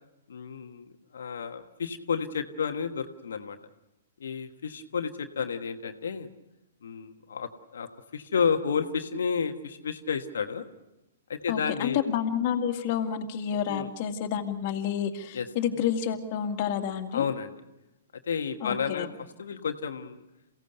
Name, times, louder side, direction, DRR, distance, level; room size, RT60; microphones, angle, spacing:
voice 1, 0.3-0.9 1.1-3.6 4.2-6.3 6.8-10.6 11.3-12.0 13.7-13.9 15.3-15.5 17.1-17.5 18.3-19.1 19.4-20.2, left 6 dB, 65° left, 7 dB, 1.3 m, -31 dB
voice 2, 11.5-17.3 18.6-19.1, left 8 dB, 45° left, 4 dB, 2.0 m, -29 dB
28.5 x 17.0 x 6.8 m, 0.97 s
figure-of-eight pair, 115°, 0 cm